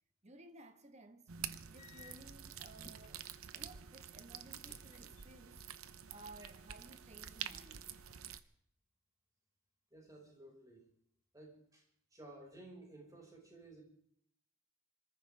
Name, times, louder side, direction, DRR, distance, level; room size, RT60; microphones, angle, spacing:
voice 1, 0.2-1.3 1.7-3.2 3.5-5.7 6.1-8.0, right 2 dB, 30° right, 1.5 m, -57 dB
sound 1, 1.3-8.4, right 9 dB, 80° right, 0.9 m, -48 dB
sound 2, 1.8-3.5 4.5-5.6 5.8-6.7, left 4 dB, 35° left, 1.5 m, -61 dB
voice 2, 9.9-10.9 11.3-11.8 12.1-13.8, right 2 dB, 15° right, 5.5 m, -55 dB
26.5 x 14.5 x 3.5 m
head